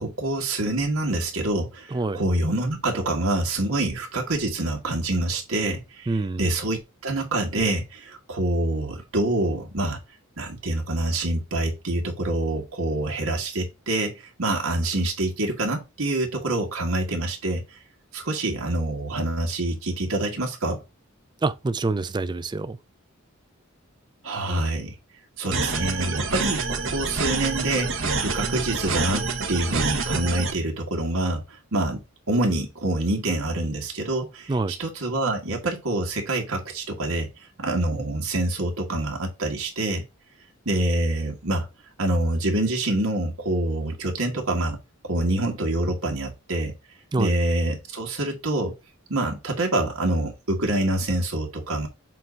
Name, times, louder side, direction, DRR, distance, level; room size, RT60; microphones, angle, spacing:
voice 1, 0.0-10.0 10.4-17.8 18.1-20.8 24.2-24.9 25.4-31.4 31.7-32.0 32.3-34.5 34.8-37.3 37.6-40.0 40.6-41.7 42.0-44.8 45.0-46.7 47.2-48.7 49.1-51.9, right 1 dB, 90° right, 1.7 m, -26 dB
voice 2, 1.9-2.2 6.1-6.4 21.4-22.8 34.5-34.8 47.1-47.3, right 3 dB, 20° right, 0.4 m, -26 dB
sound 1, 25.5-30.5, right 4 dB, 65° right, 1.4 m, -27 dB
7.5 x 2.7 x 5.2 m
head